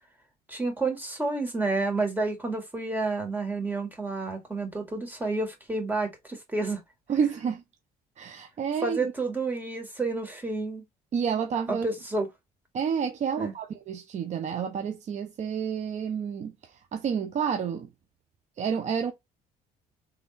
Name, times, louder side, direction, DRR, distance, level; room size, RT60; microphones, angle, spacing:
voice 1, 0.5-6.8 8.8-10.8 11.7-12.3 13.4-13.5, right 3 dB, 10° right, 2.1 m, -30 dB
voice 2, 7.1-7.6 8.2-9.1 11.1-11.9 12.7-17.9 18.6-19.1, right 7 dB, 45° right, 0.7 m, -29 dB
3.6 x 3.6 x 4.0 m
supercardioid pair, 90°, 16 cm